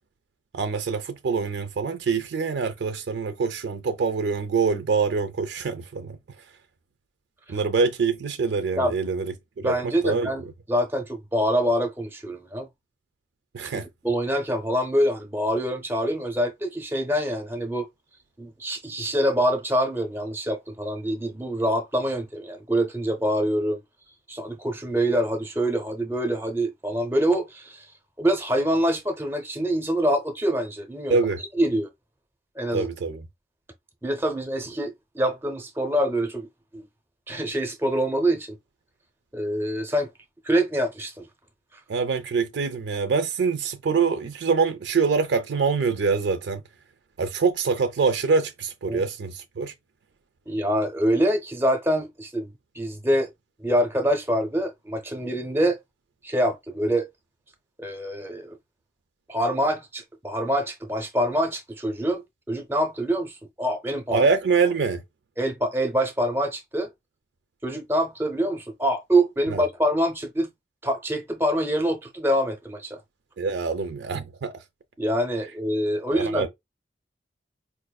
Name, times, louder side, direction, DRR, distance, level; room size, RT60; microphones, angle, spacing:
voice 1, 0.5-6.2 7.5-10.3 13.5-13.9 31.1-31.4 32.7-33.2 41.9-46.6 47.2-49.7 64.1-65.0 69.5-69.6 73.4-74.6 76.1-76.5, right 5 dB, 85° right, 0.4 m, -25 dB
voice 2, 8.8-9.1 9.6-10.4 10.7-12.7 13.7-17.9 18.4-23.8 24.3-27.9 28.2-31.2 31.6-31.9 32.6-32.9 34.0-36.8 37.3-38.6 39.3-40.1 40.4-41.3 48.9-49.0 50.5-53.3 53.6-55.8 56.2-57.1 57.8-58.6 59.3-64.3 65.4-66.9 67.6-70.5 70.8-73.0 75.0-76.5, right 1 dB, 15° right, 0.6 m, -25 dB
4.7 x 2.5 x 2.2 m
head